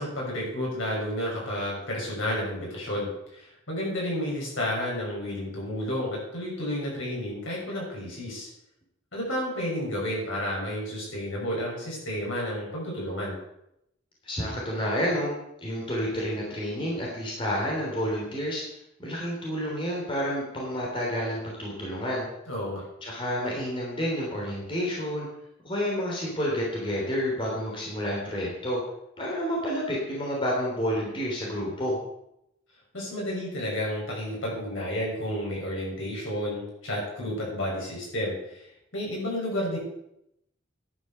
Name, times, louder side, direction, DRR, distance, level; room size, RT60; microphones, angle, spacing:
voice 1, 0.0-8.5 9.1-13.4 22.5-22.8 32.9-39.8, left 1 dB, 70° left, -3 dB, 6.7 m, -31 dB
voice 2, 14.2-15.3 15.6-18.6 19.0-22.2 23.0-25.3 25.6-28.8 29.2-32.0, equal, 25° left, -3 dB, 3.3 m, -29 dB
11.0 x 9.5 x 6.7 m, 0.81 s
head